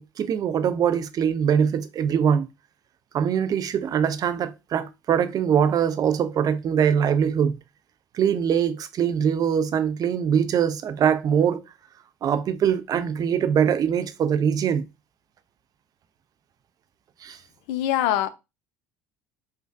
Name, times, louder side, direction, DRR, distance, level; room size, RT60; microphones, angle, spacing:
voice 1, 0.0-2.5 3.1-7.6 8.1-11.6 12.2-14.8 17.2-17.4, right 8 dB, 45° right, 0.4 m, -22 dB
voice 2, 17.7-18.3, left 12 dB, 70° left, 0.4 m, -23 dB
3.3 x 2.2 x 2.6 m
hypercardioid pair, 70°, 9 cm